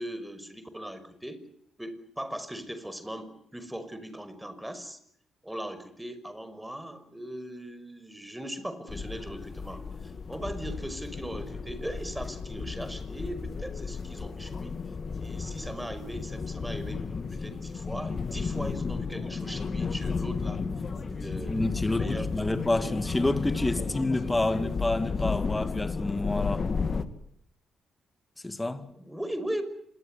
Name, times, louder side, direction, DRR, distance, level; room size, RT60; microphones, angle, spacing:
voice 1, 0.0-1.4 1.8-5.0 5.4-14.7 15.2-17.0 17.3-20.6 21.1-23.0 23.8-23.9 28.9-29.6, right 1 dB, 5° right, 5.8 m, -39 dB
sound 1, 8.9-27.1, left 5 dB, 45° left, 2.5 m, -33 dB
voice 2, 21.5-26.7 28.4-28.9, left 2 dB, 20° left, 2.4 m, -28 dB
26.5 x 23.0 x 8.3 m
hypercardioid pair, 40°, 0 cm